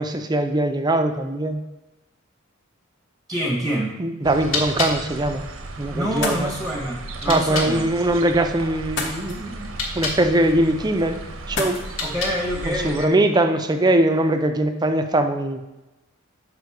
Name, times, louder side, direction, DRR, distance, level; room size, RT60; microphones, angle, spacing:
voice 1, 0.0-1.6 4.0-5.4 5.8-6.5 7.3-11.2 11.5-11.8 12.7-15.6, right 1 dB, 20° right, 7 dB, 0.5 m, -21 dB
voice 2, 3.3-3.9 5.9-7.9 12.0-13.2, equal, ahead, -1 dB, 1.0 m, -26 dB
sound 1, 4.2-7.8 9.6-10.3 11.8-12.6, left 3 dB, 80° left, 1.3 m, -31 dB
sound 2, 4.2-13.1, right 2 dB, 80° right, 0.8 m, -36 dB
sound 3, 6.0-14.5, left 3 dB, 60° left, 1.1 m, -37 dB
6.5 x 5.0 x 4.7 m, 1.0 s
head